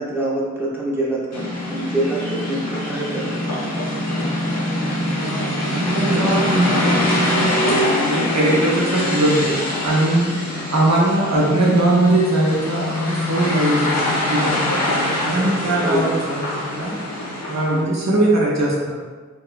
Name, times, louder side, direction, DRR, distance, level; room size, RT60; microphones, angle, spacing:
voice 1, 0.0-3.4 14.9-15.4 15.8-16.1 17.7-18.0, right 1 dB, 5° right, -5 dB, 0.6 m, -26 dB
sound 1, 1.3-17.8, left 1 dB, 60° left, 0.7 m, -23 dB
voice 2, 5.1-7.6 8.0-9.5 9.8-10.4 10.7-13.9 14.2-14.7 15.2-17.0 17.4-19.0, right 2 dB, 60° right, -4 dB, 0.6 m, -20 dB
2.9 x 2.2 x 2.3 m, 1.4 s
wide cardioid pair, 70°, 31 cm